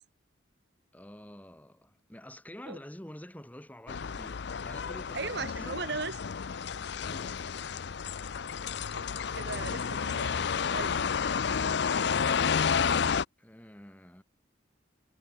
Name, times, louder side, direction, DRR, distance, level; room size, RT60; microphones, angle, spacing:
voice 1, 0.9-6.0 6.8-7.6 13.4-14.2, left 1 dB, 10° left, 1.5 m, -49 dB
sound 1, 3.9-13.3, left 6 dB, 60° left, 0.5 m, -31 dB
voice 2, 5.1-6.2 8.9-11.1, right 4 dB, 55° right, 1.6 m, -38 dB
head